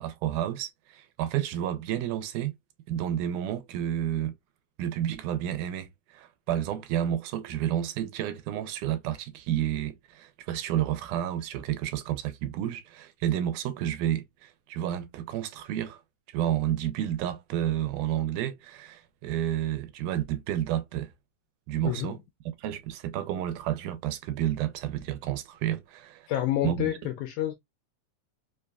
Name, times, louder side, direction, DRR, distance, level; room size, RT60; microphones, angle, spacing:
voice 1, 0.0-2.5 2.9-4.3 4.8-16.0 16.3-21.1 21.7-22.2 22.6-26.3 26.6-26.9, right 11 dB, 90° right, 2.1 m, -30 dB
voice 2, 21.8-22.1 26.3-27.5, left 12 dB, 80° left, 1.8 m, -28 dB
5.0 x 2.3 x 2.2 m
omnidirectional pair, 3.5 m